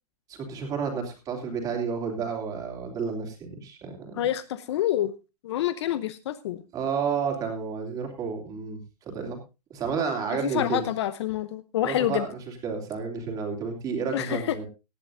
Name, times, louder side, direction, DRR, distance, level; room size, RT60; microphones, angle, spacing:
voice 1, 0.3-4.2 6.7-9.4 9.7-10.8 11.8-14.7, right 6 dB, 20° right, 2 dB, 3.1 m, -31 dB
voice 2, 4.1-5.1 5.4-6.6 10.4-12.3 14.1-14.6, left 12 dB, 45° left, 14 dB, 0.8 m, -27 dB
18.0 x 11.5 x 2.6 m, 0.27 s
hypercardioid pair, 165°, 20 cm